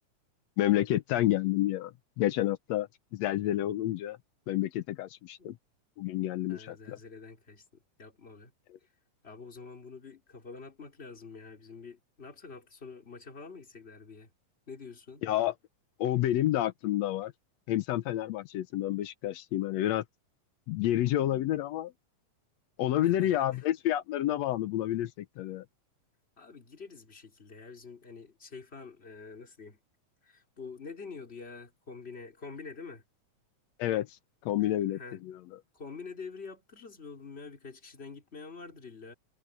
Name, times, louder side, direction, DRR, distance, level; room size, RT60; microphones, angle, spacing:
voice 1, 0.6-4.2 4.5-5.6 6.0-7.0 15.2-15.5 16.0-17.3 17.7-20.0 20.7-21.9 22.8-25.6 33.8-34.1 34.4-35.4, left 13 dB, 70° left, 1.8 m, -29 dB
voice 2, 6.5-8.5 9.2-14.3 14.7-15.2 23.0-23.6 26.4-29.8 30.2-33.0 34.6-35.2 35.7-39.1, left 4 dB, 20° left, 3.2 m, -46 dB
omnidirectional pair, 3.5 m